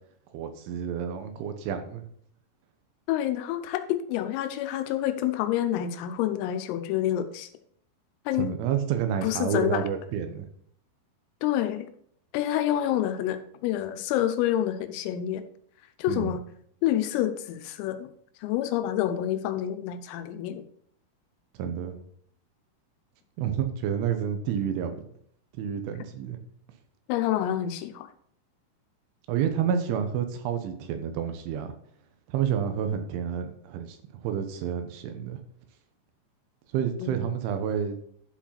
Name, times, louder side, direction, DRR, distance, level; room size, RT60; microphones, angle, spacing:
voice 1, 0.3-2.0 8.4-10.5 16.1-16.3 21.6-22.0 23.4-25.0 25.6-26.4 29.3-31.7 32.3-34.0 34.2-35.4 36.7-38.0, right 8 dB, 75° right, 7 dB, 3.2 m, -29 dB
voice 2, 3.1-7.5 8.3-8.6 9.2-9.8 11.4-11.9 12.3-15.4 16.0-16.5 16.8-18.1 18.4-20.7 27.1-28.1 37.0-37.2, left 12 dB, 90° left, 9 dB, 3.5 m, -28 dB
11.5 x 4.9 x 5.7 m, 0.64 s
omnidirectional pair, 5.9 m